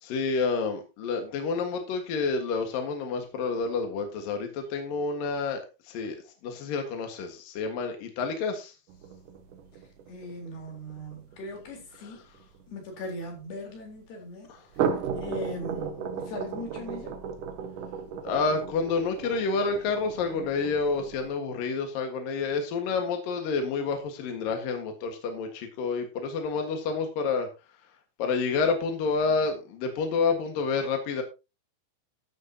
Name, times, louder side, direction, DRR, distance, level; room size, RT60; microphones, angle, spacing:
voice 1, 0.0-6.2 6.4-8.8 11.9-12.2 14.5-14.7 18.2-27.5 28.2-31.2, left 4 dB, 65° left, 3.2 m, -29 dB
sound 1, 8.9-13.4 14.6-21.3, right 6 dB, 65° right, 2.7 m, -35 dB
voice 2, 10.1-12.2 12.7-14.9 15.2-17.2, left 1 dB, 85° left, 6.1 m, -39 dB
14.0 x 11.0 x 2.9 m
omnidirectional pair, 4.5 m